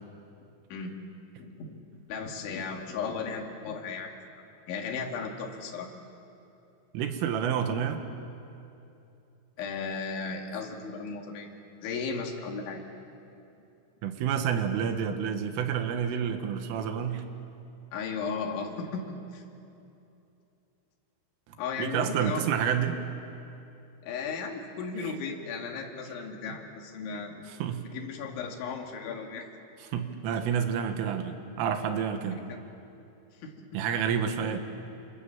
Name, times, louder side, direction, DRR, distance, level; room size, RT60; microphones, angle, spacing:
voice 1, 0.4-1.0 1.4-1.8 2.1-4.1 4.7-5.9 9.6-11.5 11.8-12.8 17.9-19.4 21.6-22.5 24.0-27.4 27.9-29.5 33.4-33.7, left 5 dB, 70° left, 1 dB, 4.6 m, -35 dB
voice 2, 6.9-8.0 14.0-17.2 21.5-23.0 27.6-27.9 29.9-32.4 33.7-34.6, right 8 dB, 80° right, 7 dB, 4.1 m, -29 dB
29.0 x 27.5 x 7.3 m, 2.8 s
omnidirectional pair, 5.8 m